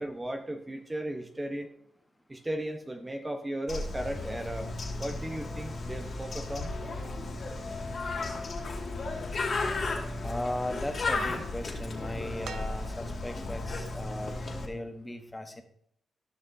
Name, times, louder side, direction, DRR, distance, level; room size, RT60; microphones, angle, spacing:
voice 1, 0.0-1.7 2.3-4.7 5.0-6.7, right 1 dB, 15° right, 5 dB, 1.0 m, -36 dB
Bird, 3.7-14.7, left 3 dB, 50° left, 2.3 m, -34 dB
voice 2, 10.2-15.6, left 1 dB, 15° left, 6 dB, 1.3 m, -37 dB
sound 1, 12.4-13.5 15.0-15.1, right 7 dB, 75° right, 0.6 m, -45 dB
15.0 x 6.0 x 2.8 m, 0.66 s
cardioid pair, 90°, 0 cm